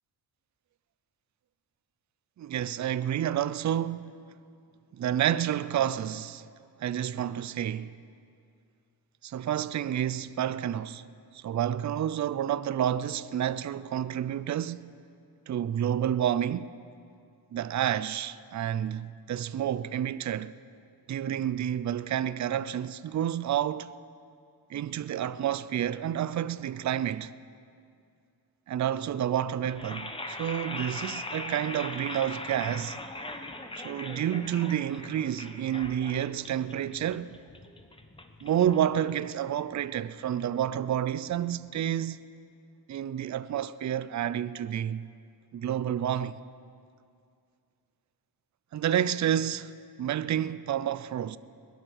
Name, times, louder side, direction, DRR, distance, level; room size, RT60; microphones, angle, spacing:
voice 1, 2.4-4.2 4.9-6.4 6.8-7.9 9.2-11.0 11.3-14.9 15.5-16.7 17.5-20.5 21.1-23.9 24.7-27.3 28.7-33.0 33.8-37.4 38.4-42.2 42.9-45.1 45.5-46.4 48.7-49.7 50.0-51.4, right 10 dB, 45° right, 0.5 m, -29 dB
sound 1, 29.6-39.7, left 2 dB, 15° left, 1.0 m, -40 dB
21.5 x 10.5 x 6.4 m
cardioid pair, 105°, 40 cm